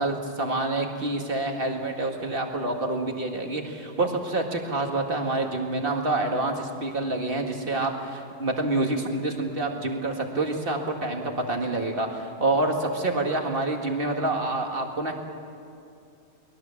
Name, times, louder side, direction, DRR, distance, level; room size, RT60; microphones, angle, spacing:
voice 1, 0.0-15.1, right 2 dB, 40° right, 3 dB, 2.2 m, -27 dB
23.5 x 20.5 x 7.3 m, 2.5 s
omnidirectional pair, 1.4 m